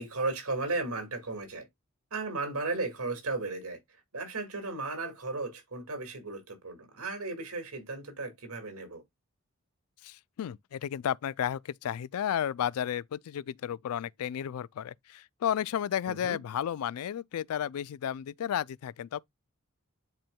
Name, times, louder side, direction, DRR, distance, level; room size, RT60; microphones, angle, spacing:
voice 1, 0.0-1.7 2.1-3.8 4.1-9.0 16.1-16.4, right 3 dB, 75° right, 2.1 m, -35 dB
voice 2, 10.0-19.2, left 9 dB, 75° left, 0.3 m, -33 dB
10.5 x 4.4 x 2.2 m
head